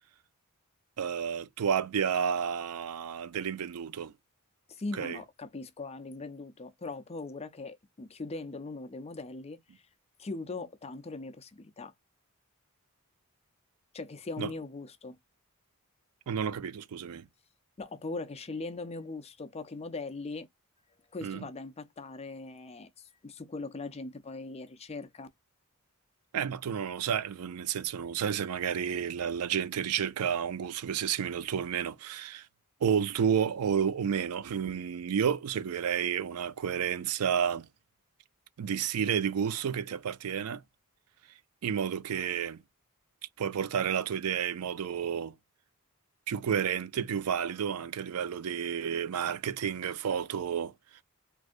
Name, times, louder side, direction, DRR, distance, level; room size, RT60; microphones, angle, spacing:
voice 1, 1.0-4.1 5.0-5.2 14.4-14.5 16.3-17.2 21.2-21.4 26.3-32.4 32.8-37.7 38.6-40.6 41.6-42.6 43.4-45.3 46.3-50.7, right 8 dB, 75° right, 0.4 m, -31 dB
voice 2, 4.7-9.9 10.2-11.9 13.9-15.2 17.8-20.5 21.1-25.3, left 3 dB, 30° left, 0.5 m, -40 dB
3.2 x 2.6 x 2.5 m
head